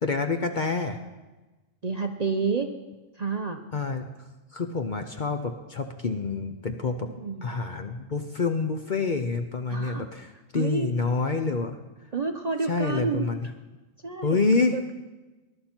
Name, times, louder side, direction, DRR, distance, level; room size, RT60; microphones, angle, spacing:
voice 1, 0.0-1.0 3.7-4.1 4.5-7.1 7.4-11.8 12.7-13.5 14.2-14.8, left 4 dB, 45° left, 6 dB, 0.7 m, -27 dB
voice 2, 1.8-2.7 3.2-3.6 7.0-7.5 9.7-10.0 10.5-10.9 12.1-13.3 14.0-14.9, right 4 dB, 40° right, 5 dB, 0.7 m, -29 dB
20.5 x 11.5 x 4.4 m, 1.2 s
omnidirectional pair, 1.4 m